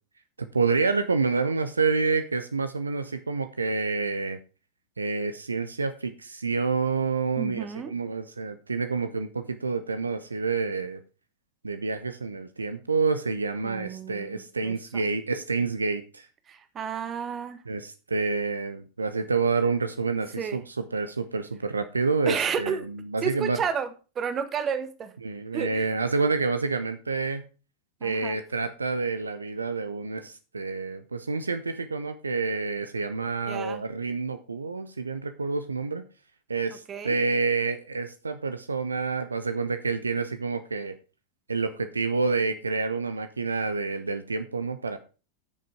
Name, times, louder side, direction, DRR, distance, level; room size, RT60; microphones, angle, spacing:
voice 1, 0.4-4.4 5.0-11.0 11.6-16.3 17.7-23.6 25.2-27.5 28.0-36.0 36.5-41.0 41.5-45.0, right 4 dB, 75° right, 10 dB, 0.8 m, -28 dB
voice 2, 7.4-7.9 13.6-15.0 16.5-17.6 20.4-20.6 22.3-22.8 23.2-23.9 24.1-25.1 25.5-25.9 28.0-28.4 33.5-33.8 36.9-37.1, right 7 dB, 25° right, 10 dB, 1.4 m, -31 dB
10.0 x 6.6 x 5.0 m, 0.35 s
figure-of-eight pair, 90°, 0 cm